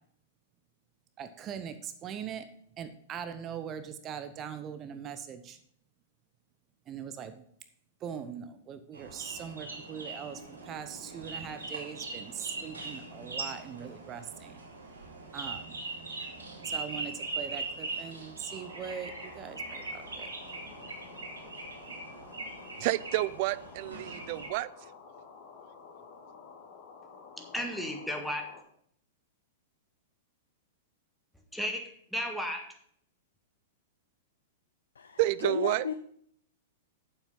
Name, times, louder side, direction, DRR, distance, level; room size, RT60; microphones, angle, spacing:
voice 1, 1.2-2.5 2.8-5.6 6.9-7.4 8.0-14.6 15.3-15.8 16.6-20.3, right 8 dB, 30° right, 0.9 m, -41 dB
sound 1, 8.9-24.5, right 3 dB, 80° right, 2.7 m, -41 dB
sound 2, 18.5-28.6, left 5 dB, 45° left, 2.7 m, -51 dB
voice 2, 22.8-24.7 35.2-35.8, right 18 dB, 50° right, 0.5 m, -29 dB
voice 3, 27.4-28.6 31.5-32.7, equal, ahead, 1.9 m, -34 dB
voice 4, 35.0-35.9, left 6 dB, 80° left, 0.7 m, -34 dB
8.9 x 7.4 x 5.5 m
hypercardioid pair, 105°, 0 cm